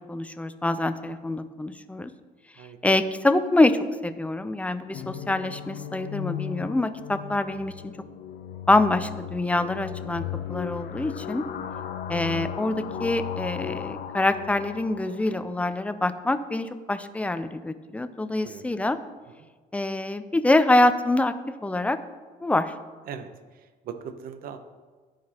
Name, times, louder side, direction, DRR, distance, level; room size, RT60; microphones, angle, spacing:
voice 1, 0.1-2.1 2.8-7.7 8.7-11.4 12.1-19.0 19.7-21.3 21.6-22.0 22.4-22.7, left 2 dB, 10° left, 11 dB, 0.4 m, -25 dB
sound 1, 4.9-15.7, left 9 dB, 70° left, 0.6 m, -36 dB
voice 2, 23.8-24.6, right 7 dB, 60° right, 9 dB, 0.8 m, -38 dB
14.0 x 4.9 x 2.9 m, 1.4 s
cardioid pair, 110°, 17 cm